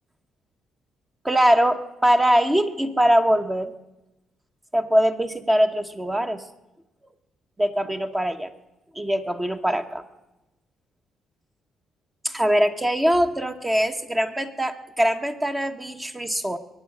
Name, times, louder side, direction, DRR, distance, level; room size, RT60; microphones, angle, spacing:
voice 1, 1.2-3.7 4.7-6.4 7.6-8.5 8.9-10.0 12.2-16.6, equal, 15° right, 7 dB, 1.0 m, -22 dB
22.0 x 9.6 x 6.3 m, 0.99 s
cardioid pair, 90°, 0 cm